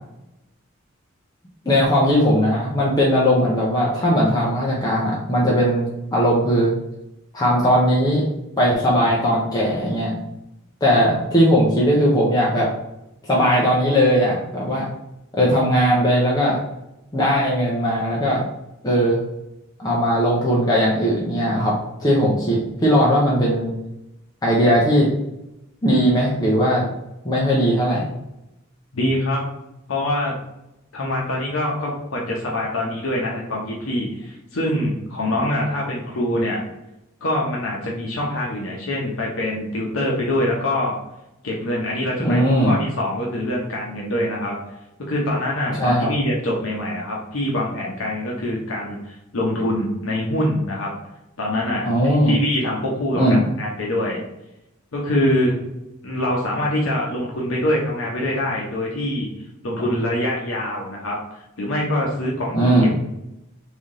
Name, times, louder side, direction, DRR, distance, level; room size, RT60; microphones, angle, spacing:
voice 1, 1.7-5.9 6.1-6.7 7.3-8.3 8.6-10.2 10.8-12.7 13.2-14.9 15.3-16.6 17.1-18.4 18.8-19.2 19.8-21.7 22.0-23.7 24.4-25.1 25.8-26.8 27.2-28.1 42.2-42.8 45.8-46.1 51.8-52.3 53.1-53.4 62.5-62.9, equal, 20° left, -5 dB, 0.6 m, -18 dB
voice 2, 28.9-29.4 29.9-30.3 30.9-36.6 37.2-41.0 41.4-44.6 45.1-50.9 51.4-54.2 54.9-55.6 56.0-59.3 59.6-63.0, left 1 dB, 75° left, -3 dB, 0.8 m, -24 dB
3.5 x 2.7 x 3.6 m, 0.90 s
head